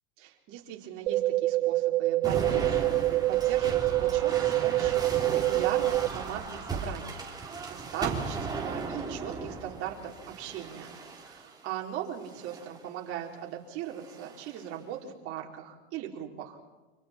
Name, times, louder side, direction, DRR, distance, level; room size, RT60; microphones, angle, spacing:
voice 1, 0.2-16.6, right 9 dB, 45° right, 0 dB, 4.2 m, -39 dB
sound 1, 1.1-6.1, right 16 dB, 70° right, 0.8 m, -26 dB
sound 2, 2.2-11.6 12.3-12.8 13.9-14.6, right 4 dB, 10° right, 3.7 m, -37 dB
29.5 x 27.0 x 4.5 m, 1.2 s
hypercardioid pair, 125°, 33 cm